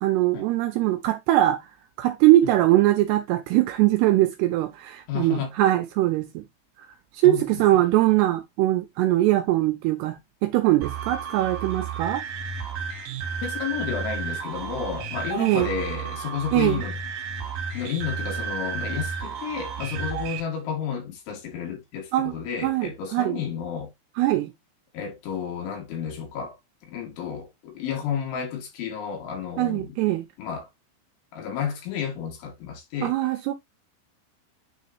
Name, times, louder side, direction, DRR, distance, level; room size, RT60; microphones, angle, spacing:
voice 1, 0.0-1.7 2.0-6.4 7.2-12.2 15.4-15.7 16.5-16.8 22.1-22.3 22.6-23.4 24.2-24.5 29.6-30.3 33.0-33.5, right 15 dB, 80° right, 2.4 m, -21 dB
voice 2, 5.1-5.5 7.2-7.4 13.4-17.0 17.7-23.9 24.9-26.6 26.8-30.0 30.4-30.7 31.3-33.2, left 7 dB, 80° left, 4.5 m, -31 dB
sound 1, 10.8-20.4, right 6 dB, 65° right, 2.6 m, -32 dB
9.2 x 3.9 x 2.8 m
omnidirectional pair, 5.3 m